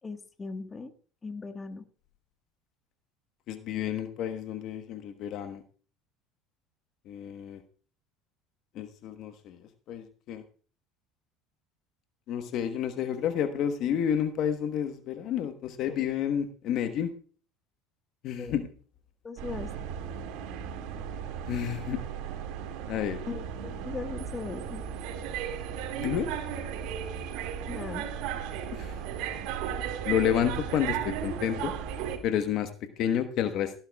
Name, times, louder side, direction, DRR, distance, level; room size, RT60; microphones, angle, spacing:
voice 1, 0.0-0.9 1.2-1.9 15.9-16.0 18.4-18.6 19.2-19.7 23.3-24.9 27.7-28.1, left 4 dB, 25° left, 8 dB, 1.4 m, -39 dB
voice 2, 3.5-5.6 7.1-7.6 8.7-10.4 12.3-17.1 18.2-18.7 21.4-22.0 22.9-23.2 26.0-26.3 28.7-29.0 30.0-31.7 32.2-32.7 33.0-33.7, left 9 dB, 60° left, 8 dB, 1.2 m, -30 dB
sound 1, 19.4-32.2, right 8 dB, 70° right, 2.1 m, -35 dB
18.0 x 10.5 x 2.3 m, 0.40 s
supercardioid pair, 90°, 0 cm